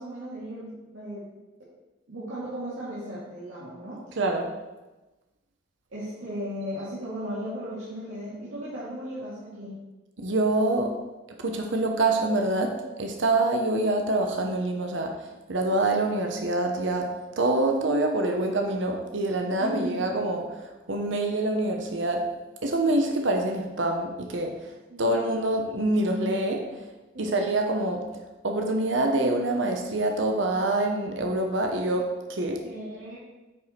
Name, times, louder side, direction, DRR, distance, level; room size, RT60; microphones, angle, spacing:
voice 1, 0.0-1.4 2.1-4.0 5.9-9.7 19.6-20.0 24.9-25.1 27.1-27.4 32.6-33.2, equal, 85° right, -10 dB, 2.3 m, -36 dB
voice 2, 4.2-4.5 10.2-10.9 11.4-15.1 15.5-20.6 20.9-22.3 22.6-24.7 25.0-26.7 27.2-28.0 28.4-32.6, right 2 dB, 65° right, 3 dB, 0.9 m, -26 dB
9.2 x 4.7 x 4.4 m, 1.1 s
head